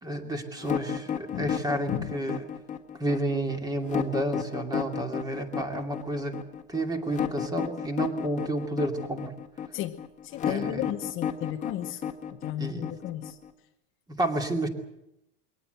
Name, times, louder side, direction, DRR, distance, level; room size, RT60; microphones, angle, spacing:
voice 1, 0.0-2.5 3.0-6.4 6.7-9.3 10.4-10.8 12.6-13.0 14.1-14.7, right 1 dB, 10° right, 5 dB, 2.5 m, -30 dB
sound 1, 0.6-13.5, left 8 dB, 20° left, 1.7 m, -32 dB
voice 2, 10.2-12.0 12.3-13.4, left 13 dB, 40° left, 7 dB, 0.9 m, -34 dB
22.5 x 18.0 x 7.9 m, 0.84 s
supercardioid pair, 150°, 33 cm